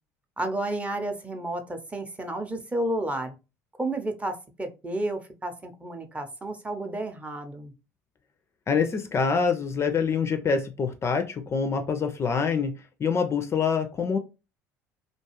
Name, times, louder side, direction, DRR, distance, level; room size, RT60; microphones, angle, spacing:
voice 1, 0.4-3.3 3.8-7.7, right 1 dB, 15° right, 0.6 m, -31 dB
voice 2, 8.7-12.7 13.0-14.2, left 5 dB, 30° left, 0.4 m, -25 dB
2.5 x 2.3 x 2.9 m
hypercardioid pair, 70°, 9 cm